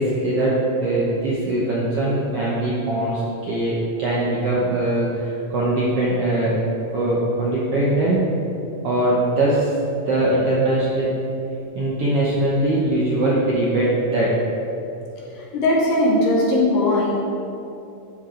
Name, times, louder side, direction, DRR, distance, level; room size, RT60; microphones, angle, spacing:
voice 1, 0.0-6.5 6.9-8.2 8.8-9.7 10.1-11.1 11.7-14.3, right 1 dB, 70° right, -7 dB, 1.4 m, -21 dB
voice 2, 15.3-17.2, left 1 dB, 75° left, -4 dB, 3.1 m, -19 dB
12.5 x 4.9 x 3.8 m, 2.9 s
omnidirectional pair, 4.1 m